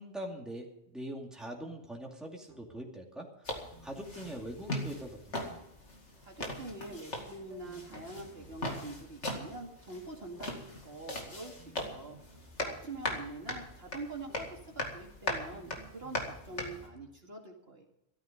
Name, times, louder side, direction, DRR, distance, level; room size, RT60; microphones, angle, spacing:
voice 1, 0.0-3.5 3.8-5.6, equal, ahead, -1 dB, 2.5 m, -43 dB
sound 1, 2.5-2.9 3.6-5.5 6.4-6.8 7.5-9.3 10.4-10.8 11.4-13.4 14.3-14.7 15.4-17.2, right 3 dB, 70° right, 2.1 m, -58 dB
sound 2, 3.4-16.9, left 1 dB, 65° left, 2.6 m, -40 dB
voice 2, 6.2-17.9, right 2 dB, 50° right, 0 dB, 2.4 m, -45 dB
14.0 x 13.5 x 5.3 m, 0.80 s
omnidirectional pair, 1.3 m